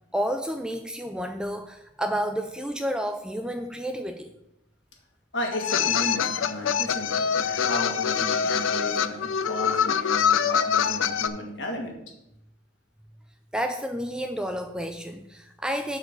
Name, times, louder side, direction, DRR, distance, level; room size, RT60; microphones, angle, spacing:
voice 1, 0.1-4.3 13.5-16.0, equal, 5° right, 7 dB, 0.4 m, -30 dB
voice 2, 5.3-12.0, left 1 dB, 60° left, 1 dB, 1.8 m, -34 dB
sound 1, 5.5-11.3, left 7 dB, 80° left, 0.5 m, -24 dB
7.8 x 4.7 x 6.6 m, 0.84 s
head